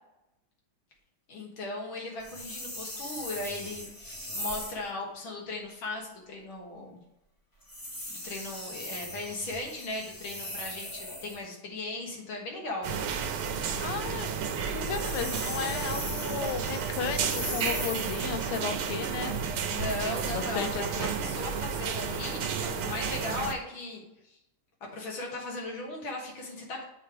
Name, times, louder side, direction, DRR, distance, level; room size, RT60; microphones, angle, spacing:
voice 1, 1.3-7.0 8.1-13.2 19.7-24.4 24.9-26.8, left 2 dB, 70° left, -1 dB, 2.1 m, -37 dB
sound 1, 2.2-4.9 7.6-11.4 14.6-18.3, left 1 dB, 35° left, 0.3 m, -39 dB
sound 2, 12.8-23.5, right 6 dB, 80° right, 1.5 m, -32 dB
voice 2, 13.8-14.3 14.7-19.4 20.0-21.1, left 6 dB, 85° left, 8 dB, 1.6 m, -34 dB
7.3 x 3.3 x 5.7 m, 0.87 s
omnidirectional pair, 2.4 m